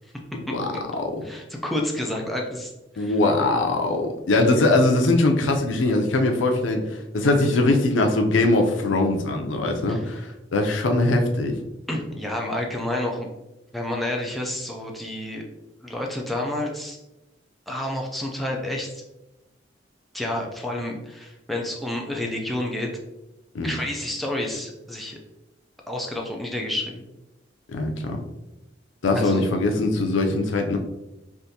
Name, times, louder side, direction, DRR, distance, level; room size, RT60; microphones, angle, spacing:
voice 1, 0.5-1.2 3.0-11.6 23.5-23.8 27.7-28.2 29.0-30.8, left 2 dB, 85° left, 4 dB, 0.5 m, -21 dB
voice 2, 1.2-3.1 9.9-10.0 11.9-13.3 13.7-15.4 15.8-17.0 17.7-19.0 20.1-22.9 23.6-25.2 25.9-27.0 29.1-29.4, left 1 dB, ahead, -1 dB, 0.4 m, -29 dB
3.5 x 2.5 x 2.7 m, 0.97 s
head